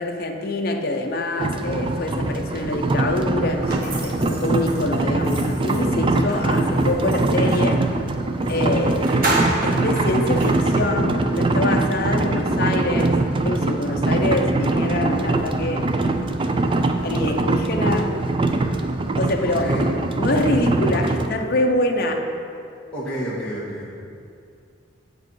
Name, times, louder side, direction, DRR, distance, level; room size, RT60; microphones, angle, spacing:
voice 1, 0.0-7.9 8.5-9.1 9.6-13.2 13.4-15.9 17.0-18.2 19.2-19.7 20.2-22.3, left 2 dB, 50° left, 2 dB, 0.7 m, -25 dB
sound 1, 1.4-21.3, right 2 dB, 25° right, 0.4 m, -22 dB
sound 2, 3.7-7.7 8.4-8.5 8.8-10.9, right 2 dB, 45° right, 1.6 m, -30 dB
voice 2, 9.0-9.3 12.1-12.3 19.4-19.9 22.9-24.0, equal, 5° left, -9 dB, 1.8 m, -30 dB
8.0 x 4.8 x 6.2 m, 2.4 s
head